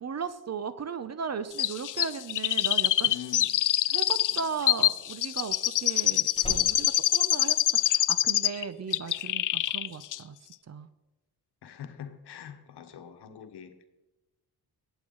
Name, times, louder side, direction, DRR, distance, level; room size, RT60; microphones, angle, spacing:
voice 1, 0.0-3.2 3.9-10.9, right 6 dB, 40° right, 0.7 m, -37 dB
Chirp tweet, 1.6-8.6 8.9-9.9 10.1-10.2, left 12 dB, 55° left, 0.4 m, -25 dB
voice 2, 3.0-3.5 11.6-13.8, left 9 dB, 90° left, 1.1 m, -44 dB
Slam, 3.5-8.2 8.4-8.9, left 3 dB, 15° left, 1.3 m, -45 dB
21.0 x 8.1 x 3.9 m
wide cardioid pair, 110°, 39 cm